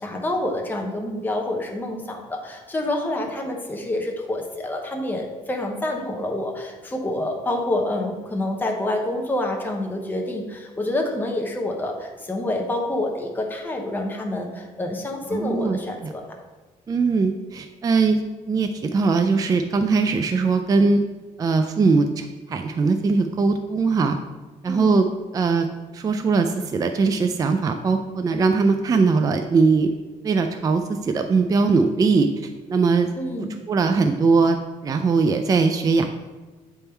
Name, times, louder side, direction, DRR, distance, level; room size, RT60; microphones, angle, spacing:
voice 1, 0.0-16.2 24.6-25.0 33.2-33.6, left 1 dB, 15° left, 1 dB, 0.9 m, -27 dB
voice 2, 15.3-15.8 16.9-21.0 21.4-24.2 24.6-25.1 25.3-25.7 25.9-29.9 30.2-33.1 33.4-34.6 34.8-36.1, right 4 dB, 25° right, 6 dB, 0.3 m, -20 dB
8.0 x 3.6 x 4.4 m, 1.3 s
cardioid pair, 115°, 14 cm